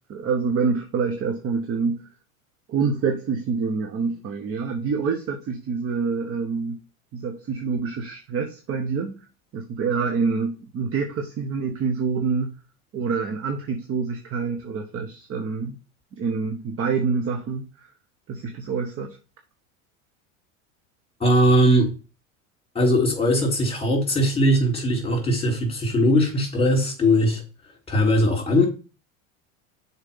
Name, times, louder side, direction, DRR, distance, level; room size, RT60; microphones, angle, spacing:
voice 1, 0.1-2.1 2.7-6.8 7.1-9.2 9.5-12.5 12.9-15.8 16.2-17.9 18.3-19.2, right 5 dB, 35° right, 1.1 m, -26 dB
voice 2, 21.2-21.9 22.8-27.4 27.9-28.7, equal, 15° left, 3.5 m, -20 dB
6.6 x 4.5 x 5.5 m
hypercardioid pair, 95°, 40 cm